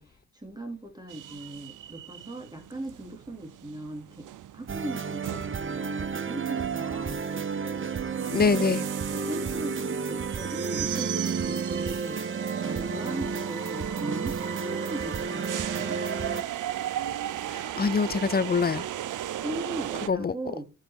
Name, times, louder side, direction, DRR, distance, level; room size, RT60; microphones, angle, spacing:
voice 1, 0.0-4.3 4.5-7.2 8.2-8.8 9.1-16.0 19.4-20.6, right 1 dB, 10° right, 2.8 m, -39 dB
sound 1, 1.1-20.1, right 12 dB, 70° right, 0.6 m, -37 dB
sound 2, 4.7-16.4, right 5 dB, 40° right, 0.8 m, -31 dB
voice 2, 8.3-8.8 17.5-18.9 20.1-20.4, left 5 dB, 30° left, 0.5 m, -25 dB
11.0 x 4.0 x 4.4 m
cardioid pair, 50°, 32 cm